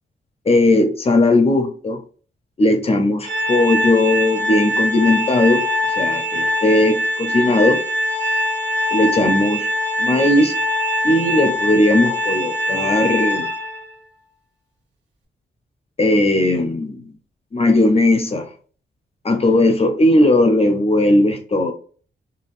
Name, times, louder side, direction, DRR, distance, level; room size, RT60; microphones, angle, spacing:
voice 1, 0.5-2.0 2.6-7.8 8.9-9.7 10.0-10.5 11.0-13.5 16.0-17.1 17.5-18.5 19.2-21.7, left 1 dB, 30° left, 6 dB, 0.4 m, -17 dB
Organ, 3.2-13.9, left 1 dB, 75° right, 1.4 m, -22 dB
3.5 x 2.2 x 2.4 m, 0.42 s
wide cardioid pair, 130°, 20 cm